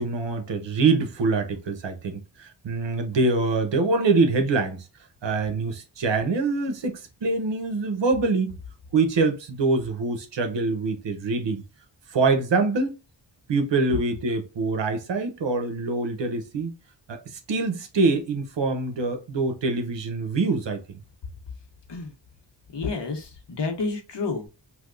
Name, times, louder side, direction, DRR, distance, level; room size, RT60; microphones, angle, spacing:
voice 1, 0.0-4.8 5.2-8.6 8.9-11.6 12.1-12.9 13.5-16.7 17.1-17.2 17.5-20.8, right 3 dB, 70° right, 0.9 m, -24 dB
voice 2, 22.7-24.5, left 4 dB, 65° left, 1.3 m, -30 dB
3.5 x 2.8 x 2.5 m
wide cardioid pair, 80°, 46 cm